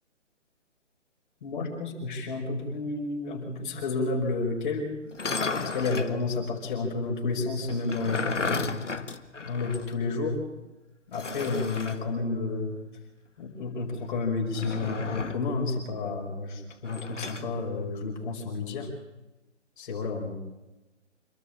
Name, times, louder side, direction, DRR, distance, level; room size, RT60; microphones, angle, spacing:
voice 1, 1.4-4.9 5.7-8.7 9.4-10.4 11.1-12.8 13.4-18.9 19.8-20.4, left 3 dB, 40° left, -1 dB, 5.6 m, -31 dB
sound 1, 5.1-6.2 7.7-9.9 10.2-10.3 11.1-12.0 14.5-15.5 16.8-17.5, left 4 dB, 75° left, 1.9 m, -33 dB
28.0 x 12.5 x 8.7 m, 1.1 s
figure-of-eight pair, 140°, 36 cm